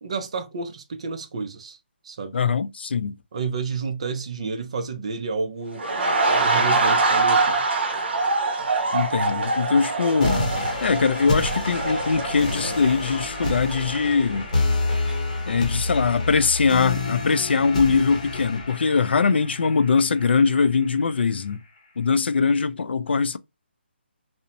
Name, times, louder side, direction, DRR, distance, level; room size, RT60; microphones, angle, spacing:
voice 1, 0.0-1.8 2.0-2.4 3.3-5.9 6.3-7.7, right 4 dB, 30° right, 0.4 m, -30 dB
voice 2, 2.3-3.2 8.9-10.4 10.8-14.5 15.5-21.6 22.0-23.4, left 5 dB, 65° left, 0.4 m, -22 dB
sound 1, 5.7-14.6 14.9-15.1, right 3 dB, 65° right, 0.7 m, -24 dB
sound 2, 10.2-21.2, left 2 dB, 35° left, 0.8 m, -29 dB
2.6 x 2.0 x 2.7 m
hypercardioid pair, 175°, 6 cm